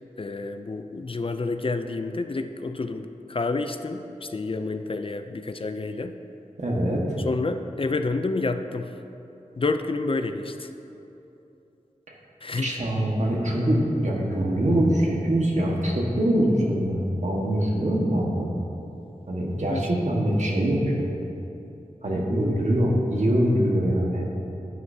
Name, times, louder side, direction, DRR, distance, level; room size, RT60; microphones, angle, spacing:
voice 1, 0.2-6.2 7.2-8.9 9.6-10.7 12.4-12.8 19.7-19.9, left 3 dB, 45° left, 8 dB, 0.5 m, -29 dB
voice 2, 6.6-7.2 12.5-18.5 19.3-21.1 22.0-24.3, right 1 dB, 65° right, -2 dB, 1.5 m, -23 dB
11.0 x 9.9 x 2.8 m, 2.8 s
wide cardioid pair, 55°, 13 cm